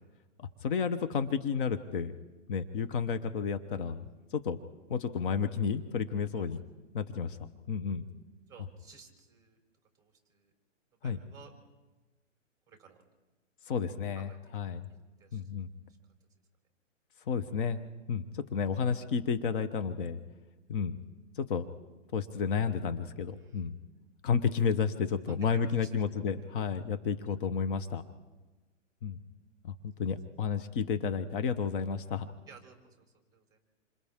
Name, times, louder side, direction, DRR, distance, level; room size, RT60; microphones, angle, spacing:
voice 1, 0.4-2.1 2.5-4.6 4.9-6.6 6.9-8.0 11.0-11.2 13.7-14.9 15.3-15.7 17.3-17.8 18.1-20.2 20.7-21.0 21.3-21.7 22.1-23.8 24.2-28.0 29.0-29.2 29.6-32.3, left 6 dB, 40° left, 9 dB, 1.1 m, -31 dB
voice 2, 8.5-9.6 10.0-10.5 11.0-11.5 12.7-13.0 14.2-14.5 15.2-15.4 23.3-23.7 25.3-25.9 26.4-26.5 32.0-32.1 32.5-33.6, right 6 dB, 10° right, 2 dB, 3.7 m, -56 dB
27.5 x 26.5 x 3.7 m, 1.2 s
hypercardioid pair, 145°, 39 cm